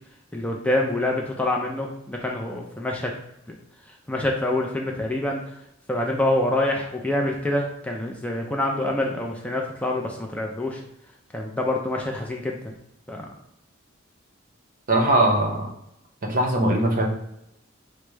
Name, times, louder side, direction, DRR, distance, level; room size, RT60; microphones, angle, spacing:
voice 1, 0.3-3.1 3.5-3.6 4.1-5.4 5.9-10.8 11.3-12.7 13.1-13.3, left 1 dB, 5° left, 0 dB, 0.4 m, -26 dB
voice 2, 14.9-15.7 16.2-17.1, right 1 dB, 45° right, 1 dB, 0.7 m, -20 dB
4.6 x 2.0 x 3.3 m, 0.83 s
head